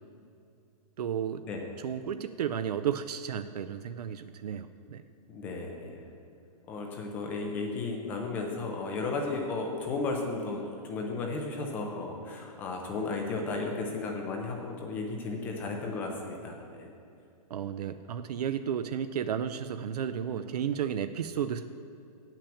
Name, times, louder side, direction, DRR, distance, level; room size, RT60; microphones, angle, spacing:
voice 1, 1.0-1.4 1.8-5.0 17.5-21.6, right 8 dB, 85° right, 10 dB, 0.5 m, -33 dB
voice 2, 5.3-6.0 6.7-16.9, left 3 dB, 10° left, 1 dB, 0.3 m, -34 dB
8.6 x 6.0 x 7.0 m, 2.5 s
hypercardioid pair, 170°, 20 cm